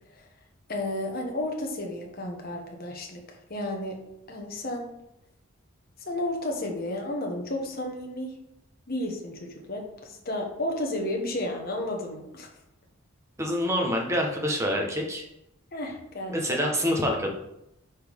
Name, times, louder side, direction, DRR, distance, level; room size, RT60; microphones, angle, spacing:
voice 1, 0.7-3.2 3.5-4.0 4.3-4.9 6.0-8.3 8.9-12.5 15.7-16.4, left 1 dB, 45° left, 1 dB, 1.4 m, -32 dB
voice 2, 13.4-15.3 16.3-17.3, equal, 15° right, 1 dB, 1.1 m, -26 dB
9.7 x 4.3 x 3.6 m, 0.82 s
head